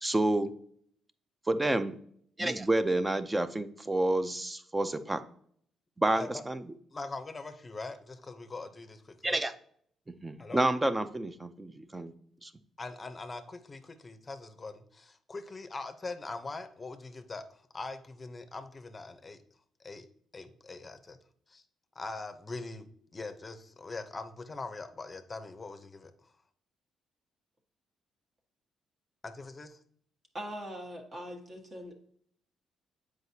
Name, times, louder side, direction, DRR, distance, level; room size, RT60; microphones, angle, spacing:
voice 1, 0.0-0.5 1.5-2.0 2.4-5.2 6.0-6.6 9.2-9.5 10.1-12.1 12.4-12.5, right 1 dB, 15° right, 0.5 m, -29 dB
voice 2, 6.9-9.4 10.4-10.6 12.8-19.4 19.8-20.1 20.3-21.2 21.5-21.6 22.0-22.9 23.1-26.1 29.2-29.8, left 3 dB, 25° left, 0.7 m, -42 dB
voice 3, 30.3-31.9, equal, 35° right, 1.4 m, -41 dB
7.7 x 4.9 x 2.7 m
cardioid pair, 90°, 0 cm